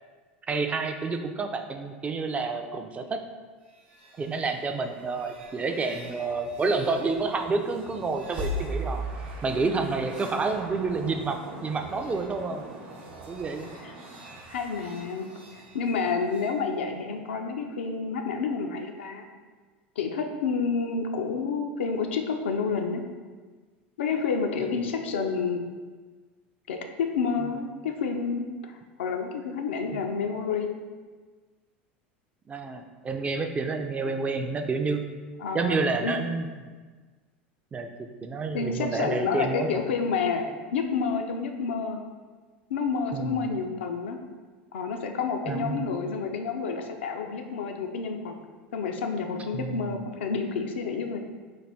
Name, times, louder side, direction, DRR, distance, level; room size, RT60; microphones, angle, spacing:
voice 1, 0.5-3.2 4.2-9.0 9.4-12.6 13.3-13.7 24.8-25.0 29.9-30.0 32.5-35.0 35.5-36.5 37.7-39.7 43.1-43.5 45.5-45.9 49.5-50.0, right 4 dB, 20° right, 5 dB, 0.3 m, -29 dB
sound 1, 3.7-16.5, right 1 dB, 75° right, 0.7 m, -40 dB
voice 2, 14.5-19.3 20.0-23.0 24.0-25.6 26.7-28.7 29.0-30.7 35.4-35.8 36.0-36.2 38.5-40.5 40.7-42.0 42.7-44.2 44.7-48.3 48.7-51.2, left 5 dB, 80° left, 4 dB, 0.4 m, -29 dB
4.0 x 2.2 x 3.4 m, 1.4 s
hypercardioid pair, 90°, 6 cm